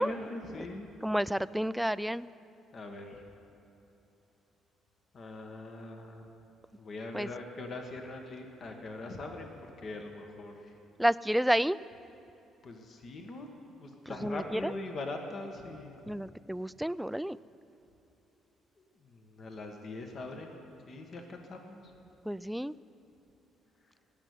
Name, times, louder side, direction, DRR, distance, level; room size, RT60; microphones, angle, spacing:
voice 1, 0.0-0.9 2.7-3.2 5.1-6.5 6.8-10.8 12.6-13.5 13.8-16.2 18.8-20.6 20.9-21.9, left 2 dB, 50° left, 4 dB, 1.5 m, -42 dB
voice 2, 1.0-2.3 7.1-7.3 11.0-11.8 14.1-14.7 16.1-17.4 22.2-22.8, equal, 5° right, 17 dB, 0.3 m, -30 dB
18.0 x 6.9 x 9.4 m, 3.0 s
hypercardioid pair, 50°, 0 cm